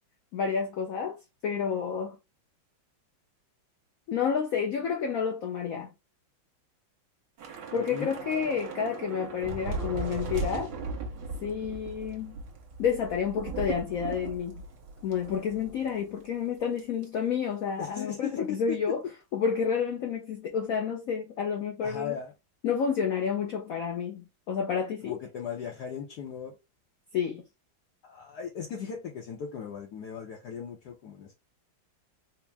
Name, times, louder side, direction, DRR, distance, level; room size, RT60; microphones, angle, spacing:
voice 1, 0.3-1.2 1.4-2.2 4.1-5.9 7.7-10.7 11.4-12.4 12.8-14.6 15.0-19.0 19.3-22.1 22.6-25.2 27.1-27.4, left 7 dB, 80° left, 0.7 m, -30 dB
Thunder / Rain, 7.4-16.0 16.2-16.4 16.8-17.0, right 4 dB, 65° right, 1.7 m, -37 dB
voice 2, 7.7-8.1 17.8-19.0 21.8-22.3 25.0-26.5 28.0-31.3, left 8 dB, 65° left, 1.2 m, -37 dB
4.4 x 2.0 x 3.4 m
omnidirectional pair, 2.2 m